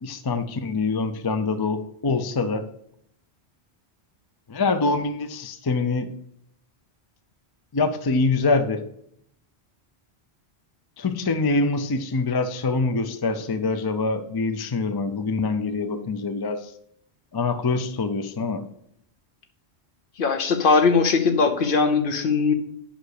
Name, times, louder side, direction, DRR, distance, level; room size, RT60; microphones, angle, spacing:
voice 1, 0.0-2.6 4.5-6.1 7.7-8.8 11.0-16.7 17.3-18.6, left 3 dB, 30° left, 8 dB, 0.4 m, -25 dB
voice 2, 20.2-22.5, left 4 dB, 55° left, 7 dB, 0.9 m, -20 dB
5.2 x 5.2 x 6.5 m, 0.71 s
omnidirectional pair, 1.1 m